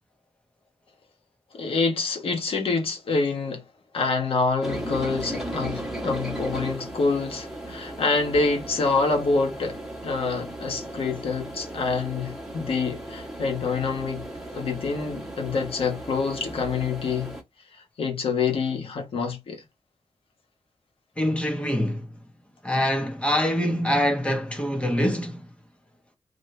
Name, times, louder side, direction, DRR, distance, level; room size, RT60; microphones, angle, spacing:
voice 1, 1.5-3.6 3.9-14.2 14.5-17.3 17.7-19.6, left 4 dB, 70° left, 1.3 m, -26 dB
sound 1, 4.6-17.4, right 1 dB, 5° right, 1.3 m, -36 dB
voice 2, 21.2-22.1 22.6-25.5, equal, 10° left, 1.2 m, -24 dB
2.9 x 2.7 x 3.3 m
wide cardioid pair, 105°, 10 cm